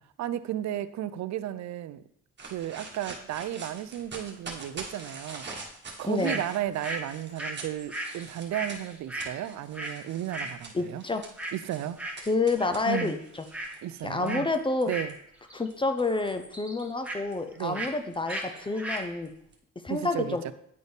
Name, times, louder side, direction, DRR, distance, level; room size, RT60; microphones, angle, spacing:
voice 1, 0.2-2.0 2.4-5.5 6.0-11.0 11.5-12.0 12.9-13.1 13.8-14.5 14.9-15.1 17.6-17.9 19.9-20.5, right 12 dB, 65° right, 14 dB, 0.5 m, -33 dB
sound 1, 2.4-15.1 15.7-19.5, right 3 dB, 35° right, 1.4 m, -45 dB
voice 2, 6.0-6.4 10.7-11.2 12.3-13.2 14.0-14.9 15.5-19.3 19.8-20.4, left 3 dB, 15° left, 7 dB, 0.6 m, -28 dB
sound 2, 6.2-6.4 6.8-10.0 10.3-10.6 11.4-11.6 12.0-12.3 12.6-13.1 13.4-13.8 14.2-14.5 14.9-15.7 15.9-17.2 17.7-18.0 18.3-18.5 18.7-19.1, right 1 dB, 5° right, 1.1 m, -36 dB
9.4 x 4.1 x 3.4 m, 0.72 s
cardioid pair, 90°, 30 cm